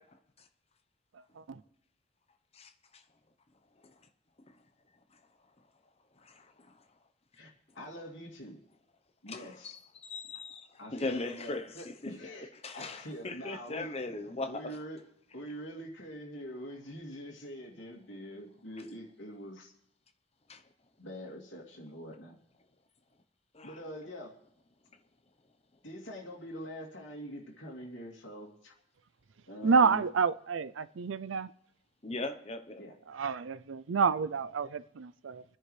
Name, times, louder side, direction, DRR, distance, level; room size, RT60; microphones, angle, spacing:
voice 1, 2.5-3.0 3.8-3.9 4.4-4.6 6.2-6.8 9.3-12.1 12.6-14.5 20.5-20.6 23.5-23.8 32.0-32.8, left 2 dB, 30° left, 0.9 m, -39 dB
voice 2, 7.4-8.6 9.2-9.8 10.8-13.9 14.5-15.0 15.3-19.7 21.0-22.4 23.6-24.4 25.8-28.7 29.5-30.0 32.8-33.0, equal, 75° left, 2.8 m, -44 dB
voice 3, 29.6-31.5 33.1-35.4, right 5 dB, 90° right, 0.5 m, -29 dB
26.0 x 10.0 x 3.3 m
head